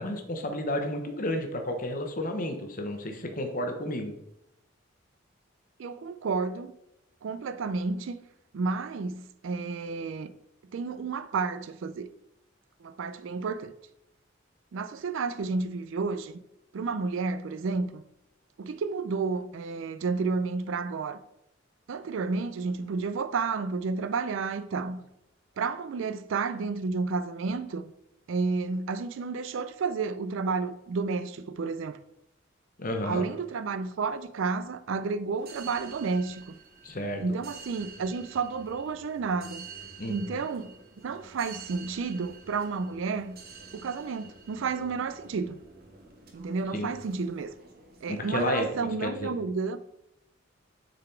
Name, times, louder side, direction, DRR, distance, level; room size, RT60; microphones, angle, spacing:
voice 1, 0.0-4.1 32.8-33.3 36.8-37.2 40.0-40.3 46.7-46.9 48.2-48.7 49.0-49.3, left 1 dB, 40° left, 0.9 m, -31 dB
voice 2, 5.8-6.7 7.2-8.2 8.5-10.3 10.7-12.1 12.8-13.7 14.7-16.4 16.7-18.0 18.6-21.2 21.9-25.0 25.6-27.9 28.3-32.0 33.0-36.5 37.2-39.7 40.1-43.4 43.7-45.6 46.3-47.6 48.0-49.8, right 4 dB, 65° right, 0.4 m, -31 dB
sound 1, 35.4-48.9, right 5 dB, 45° right, 0.9 m, -49 dB
6.7 x 4.0 x 4.4 m
head